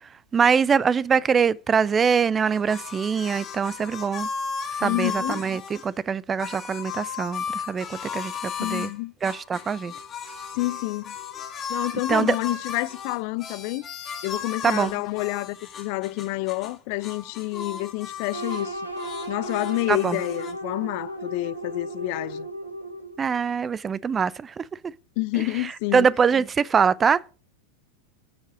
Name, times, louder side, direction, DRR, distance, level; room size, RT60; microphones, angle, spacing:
voice 1, 0.0-4.3 4.7-8.9 9.2-9.9 12.1-12.4 14.6-15.0 19.9-20.2 23.2-24.7 25.3-27.3, right 6 dB, 20° right, 0.4 m, -23 dB
sound 1, 2.5-5.9 6.4-8.9 9.2-16.8 17.0-18.7 18.9-20.5, left 6 dB, 25° left, 2.2 m, -35 dB
voice 2, 4.8-5.4 8.6-9.1 10.5-11.2 11.7-13.8 14.2-18.9 19.3-22.5 25.2-26.1, left 21 dB, 45° left, 0.5 m, -28 dB
sound 2, 18.3-23.3, right 1 dB, 85° right, 1.7 m, -35 dB
10.0 x 7.3 x 5.0 m
figure-of-eight pair, 90°, 0 cm